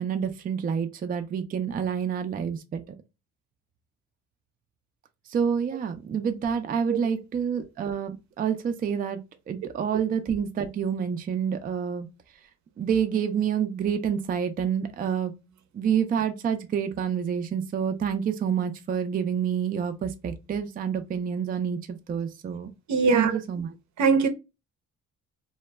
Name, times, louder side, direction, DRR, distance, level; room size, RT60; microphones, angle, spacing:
voice 1, 0.0-2.8 5.3-9.2 9.5-12.1 12.8-15.3 15.7-22.7 23.1-23.7, right 7 dB, 30° right, 0.3 m, -28 dB
voice 2, 22.9-23.4 24.0-24.3, right 5 dB, 65° right, 0.6 m, -21 dB
2.1 x 2.1 x 3.2 m
cardioid pair, 90°, 30 cm